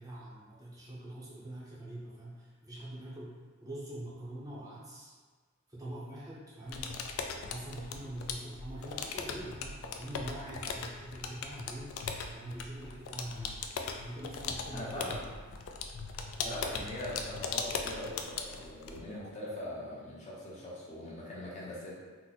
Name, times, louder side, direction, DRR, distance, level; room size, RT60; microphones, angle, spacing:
voice 1, 0.0-3.3 3.6-5.1 5.7-7.0 7.4-11.9 12.3-13.6 14.0-15.3 16.4-16.6, right 1 dB, 15° right, -7 dB, 0.6 m, -44 dB
sound 1, 6.7-19.0, left 5 dB, 75° left, 0.3 m, -39 dB
voice 2, 14.7-15.2 16.4-21.9, left 1 dB, 35° left, -6 dB, 0.7 m, -41 dB
2.8 x 2.0 x 4.0 m, 1.4 s
head